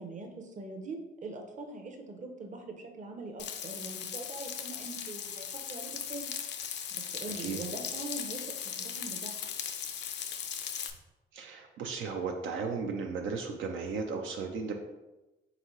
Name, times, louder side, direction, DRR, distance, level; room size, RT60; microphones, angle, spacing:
voice 1, 0.0-6.3 6.9-8.5 8.8-9.4, right 3 dB, 40° right, 4 dB, 0.7 m, -42 dB
Frying (food), 3.4-10.9, left 8 dB, 60° left, 0.5 m, -38 dB
voice 2, 11.3-14.7, right 5 dB, 75° right, 3 dB, 0.5 m, -35 dB
4.0 x 3.6 x 3.1 m, 1.0 s
cardioid pair, 90°, 20 cm